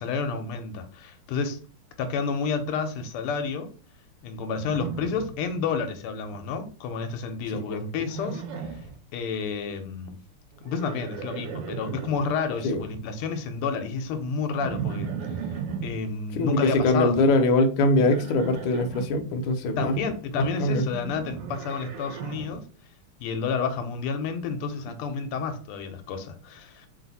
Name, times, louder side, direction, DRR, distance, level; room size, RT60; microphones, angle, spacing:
voice 1, 0.0-1.6 2.0-3.7 4.2-8.9 9.1-10.2 10.6-15.6 15.8-17.2 19.8-22.7 23.2-26.9, left 5 dB, 85° left, 1.6 m, -30 dB
Livestock farm animals working animals, 4.6-5.9 6.1-6.7 8.0-9.0 10.5-12.3 14.6-16.0 17.9-19.1 20.9-22.6, right 7 dB, 70° right, 1.2 m, -36 dB
voice 2, 16.4-19.9 20.6-20.8, left 2 dB, 70° left, 1.3 m, -22 dB
3.7 x 2.4 x 4.0 m
omnidirectional pair, 2.4 m